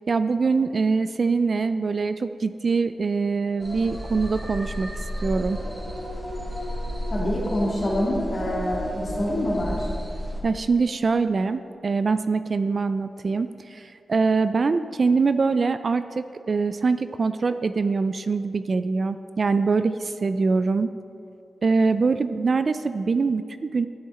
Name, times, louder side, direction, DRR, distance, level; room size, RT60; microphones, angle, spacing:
voice 1, 0.1-4.9 5.2-5.6 10.4-20.9 21.6-23.9, right 4 dB, 45° right, 11 dB, 0.3 m, -23 dB
sound 1, 3.6-10.4, equal, 15° right, 2.1 m, -31 dB
voice 2, 7.1-9.9, left 1 dB, 40° left, -4 dB, 2.0 m, -26 dB
12.0 x 9.6 x 4.2 m, 2.5 s
wide cardioid pair, 115°, 0 cm